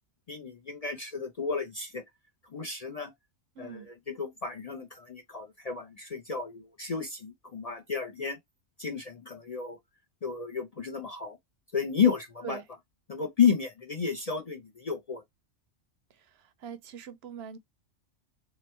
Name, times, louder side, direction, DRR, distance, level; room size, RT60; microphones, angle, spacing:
voice 1, 0.3-2.0 2.5-3.1 3.6-8.4 8.8-9.8 10.2-11.4 11.7-12.6 13.1-15.2, left 6 dB, 45° left, 0.5 m, -31 dB
voice 2, 3.6-3.9 12.4-12.6 16.1-17.6, right 8 dB, 65° right, 0.8 m, -43 dB
3.3 x 3.0 x 4.3 m
omnidirectional pair, 1.2 m